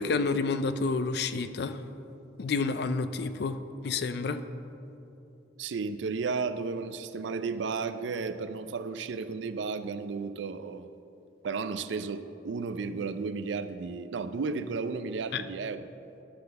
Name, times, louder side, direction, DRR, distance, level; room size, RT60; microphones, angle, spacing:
voice 1, 0.0-1.8 2.4-3.6 3.8-4.4 15.3-15.4, left 4 dB, 60° left, 11 dB, 0.4 m, -29 dB
voice 2, 5.6-10.9 11.4-15.9, right 4 dB, 85° right, 11 dB, 0.4 m, -33 dB
11.5 x 4.0 x 6.5 m, 2.7 s
head